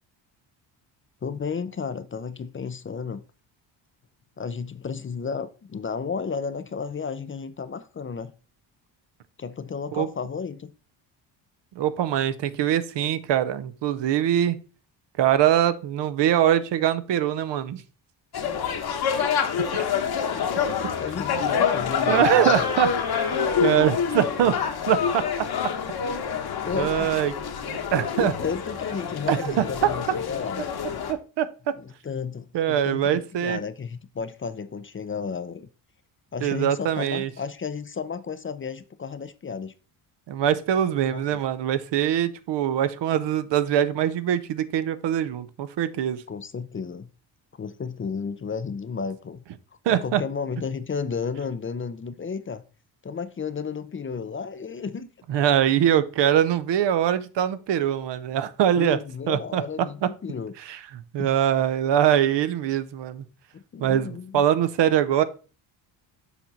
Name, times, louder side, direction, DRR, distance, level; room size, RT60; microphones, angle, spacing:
voice 1, 1.2-3.2 4.4-8.3 9.4-10.7 21.0-22.7 24.4-24.5 26.6-27.1 28.1-30.9 31.8-35.7 36.3-39.7 41.1-41.4 46.3-47.1 47.5-49.4 49.9-52.6 53.0-55.1 58.8-60.5 61.2-61.3 63.5-64.4, left 5 dB, 25° left, 0.5 m, -33 dB
voice 2, 11.8-14.6 15.2-17.8 19.7-19.8 21.4-21.5 22.1-22.9 23.6-24.5 24.9-25.5 26.0-26.2 26.7-27.3 27.7-28.3 29.3-29.9 31.1-31.8 32.5-33.6 36.4-37.3 40.3-46.2 49.8-50.2 55.3-59.0 59.3-60.1 60.6-60.8 61.1-63.2 63.8-65.2, right 10 dB, 65° right, 0.8 m, -23 dB
sound 1, 18.3-31.1, left 7 dB, 50° left, 1.2 m, -27 dB
7.1 x 4.4 x 4.0 m
cardioid pair, 85°, 46 cm